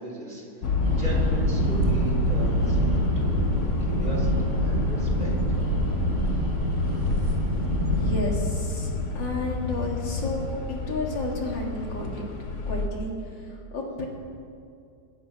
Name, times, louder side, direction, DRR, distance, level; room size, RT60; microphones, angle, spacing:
voice 1, 0.0-3.5 3.9-5.3, right 2 dB, 25° right, -6 dB, 3.3 m, -38 dB
sound 1, 0.6-12.9, left 3 dB, 50° left, 1.1 m, -29 dB
sound 2, 0.8-8.2, right 1 dB, 60° right, 3.4 m, -26 dB
voice 2, 7.9-8.9 9.1-12.2 12.7-13.1 13.4-14.1, left 2 dB, 85° left, -1 dB, 2.7 m, -32 dB
20.5 x 7.6 x 5.7 m, 2.4 s
omnidirectional pair, 1.9 m